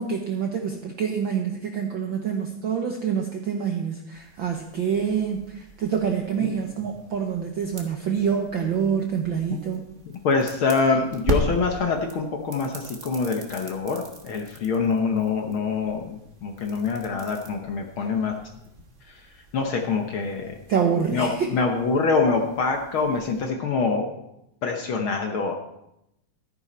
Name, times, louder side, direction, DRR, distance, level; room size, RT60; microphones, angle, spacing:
voice 1, 0.0-9.9 18.0-18.1 20.7-21.5, right 7 dB, 70° right, 3 dB, 1.1 m, -26 dB
sound 1, 4.1-23.5, right 1 dB, 35° right, 1.2 m, -39 dB
voice 2, 10.1-18.4 19.5-20.5 21.1-24.1 24.6-25.5, left 4 dB, 60° left, 3 dB, 1.4 m, -25 dB
13.5 x 10.0 x 4.3 m, 0.83 s
omnidirectional pair, 3.3 m